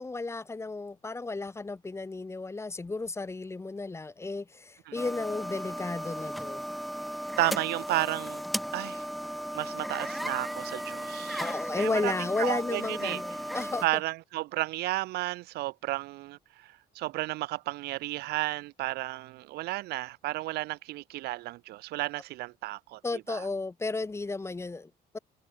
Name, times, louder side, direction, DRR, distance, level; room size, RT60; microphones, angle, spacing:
voice 1, 0.0-6.6 11.4-13.9 23.0-25.2, left 3 dB, 15° left, 1.0 m, -33 dB
sound 1, 5.0-13.9, equal, ahead, 0.7 m, -36 dB
voice 2, 7.4-8.4 8.7-9.0 9.5-11.5 11.8-12.1 12.4-13.2 13.8-23.5, right 18 dB, 75° right, 0.4 m, -33 dB
cardioid pair, 110°, 17 cm